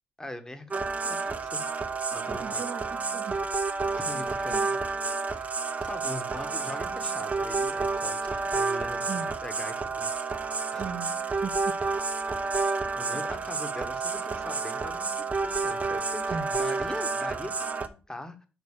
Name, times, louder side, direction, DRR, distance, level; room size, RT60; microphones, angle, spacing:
voice 1, 0.2-2.6 4.0-4.9 5.3-5.5 5.8-9.1 9.4-10.1 10.7-10.8 13.0-18.5, left 1 dB, 15° left, 1.8 m, -41 dB
sound 1, 0.7-17.9, right 4 dB, 35° right, 1.2 m, -30 dB
voice 2, 2.3-3.6 4.1-4.7 9.1-9.3 10.7-11.8 13.1-13.3 16.3-16.6, right 6 dB, 65° right, 1.5 m, -39 dB
5.8 x 5.4 x 6.6 m
supercardioid pair, 55°, 4 cm